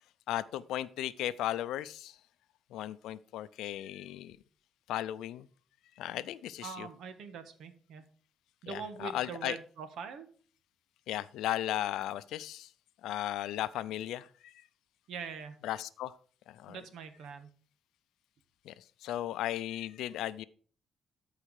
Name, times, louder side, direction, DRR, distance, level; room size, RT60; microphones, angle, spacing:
voice 1, 0.3-2.1 2.7-4.4 4.9-5.5 6.0-6.9 8.7-9.6 11.1-12.7 13.0-14.5 15.6-16.1 16.5-16.8 18.7-20.4, left 13 dB, 85° left, 15 dB, 0.5 m, -36 dB
voice 2, 6.6-8.0 8.6-10.3 15.1-15.6 16.7-17.5, right 6 dB, 75° right, 10 dB, 1.4 m, -43 dB
13.5 x 4.8 x 4.8 m, 0.44 s
cardioid pair, 90°, 0 cm